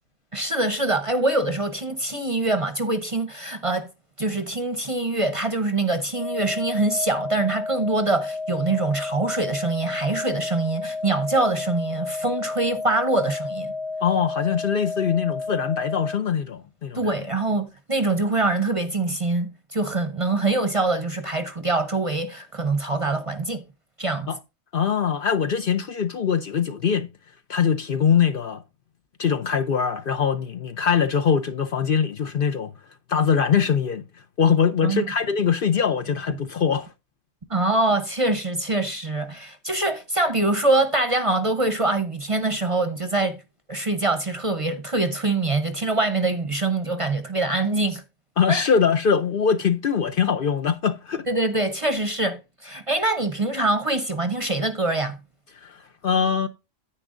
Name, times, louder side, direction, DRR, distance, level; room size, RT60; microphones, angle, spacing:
voice 1, 0.3-3.9 4.2-13.7 16.9-23.6 24.0-24.3 34.8-35.1 37.5-43.4 43.7-48.0 48.5-48.7 51.3-55.2, right 2 dB, 30° right, 0.7 m, -24 dB
sound 1, 6.1-16.1, left 3 dB, 80° left, 3.7 m, -31 dB
voice 2, 14.0-17.1 24.3-24.4 24.7-27.1 27.5-28.6 29.2-32.7 33.1-34.0 34.4-36.9 48.4-51.3 55.6-55.8 56.0-56.5, left 7 dB, 55° left, 0.7 m, -22 dB
9.9 x 9.0 x 2.5 m
omnidirectional pair, 1.3 m